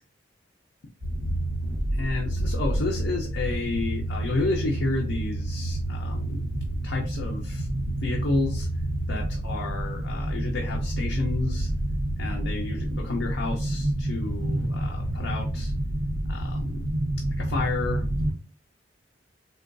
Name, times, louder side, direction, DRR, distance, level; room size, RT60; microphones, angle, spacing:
sound 1, 1.0-18.3, right 1 dB, 70° right, 0.9 m, -29 dB
voice 1, 1.9-6.5 6.8-7.7 8.0-8.7 9.1-11.7 12.2-15.7 16.3-16.8 17.4-18.1, left 3 dB, 70° left, 0 dB, 0.5 m, -31 dB
3.6 x 2.2 x 2.5 m, 0.39 s
head